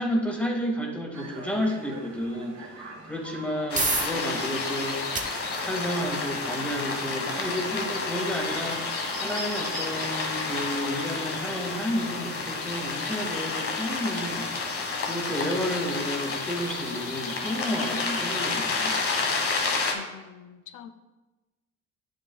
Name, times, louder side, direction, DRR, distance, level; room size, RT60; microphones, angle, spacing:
voice 1, 0.0-5.3 5.6-8.8 9.2-19.0, equal, 5° left, 0 dB, 1.9 m, -31 dB
sound 1, 1.1-19.9, right 4 dB, 65° right, 1.3 m, -44 dB
sound 2, 3.3-18.1, right 3 dB, 25° right, 0.9 m, -39 dB
sound 3, 3.7-19.9, left 4 dB, 50° left, 1.4 m, -30 dB
voice 2, 19.9-20.9, left 8 dB, 80° left, 9 dB, 0.6 m, -45 dB
10.5 x 6.4 x 2.3 m, 1.1 s
cardioid pair, 90°, 30 cm